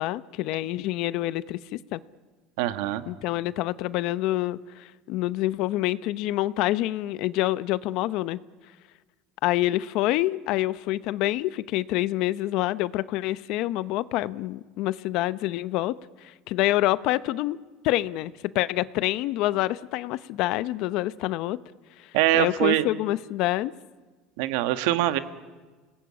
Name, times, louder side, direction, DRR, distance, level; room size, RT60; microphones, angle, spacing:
voice 1, 0.0-2.0 3.1-8.4 9.4-17.6 17.8-21.6 22.3-23.7, left 16 dB, 60° left, 16 dB, 0.8 m, -27 dB
voice 2, 2.6-3.1 22.1-22.9 24.4-25.2, right 14 dB, 80° right, 10 dB, 1.5 m, -23 dB
29.0 x 19.5 x 8.6 m, 1.3 s
supercardioid pair, 130°, 0 cm